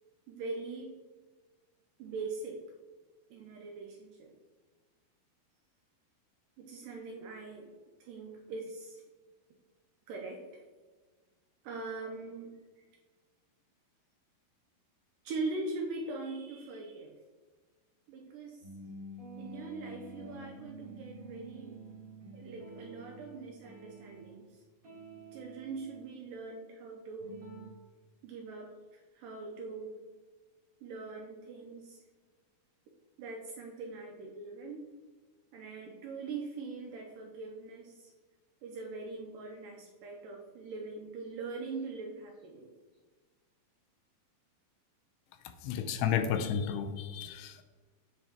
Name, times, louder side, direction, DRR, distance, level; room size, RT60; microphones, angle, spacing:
voice 1, 0.3-1.0 2.0-2.7 3.3-4.3 6.6-7.7 8.0-9.0 10.1-10.6 11.6-12.8 15.2-17.2 18.1-18.7 19.4-21.7 22.3-24.6 25.3-27.4 28.2-30.0 30.8-32.0 33.2-34.9 35.5-38.1 38.6-42.7, right 3 dB, 80° right, 1 dB, 2.0 m, -42 dB
sound 1, 18.6-24.5 24.8-26.0 27.2-27.7, right 2 dB, 45° right, 1.1 m, -48 dB
voice 2, 45.6-47.6, left 8 dB, 90° left, 8 dB, 2.6 m, -32 dB
9.0 x 4.3 x 2.8 m, 1.4 s
omnidirectional pair, 4.4 m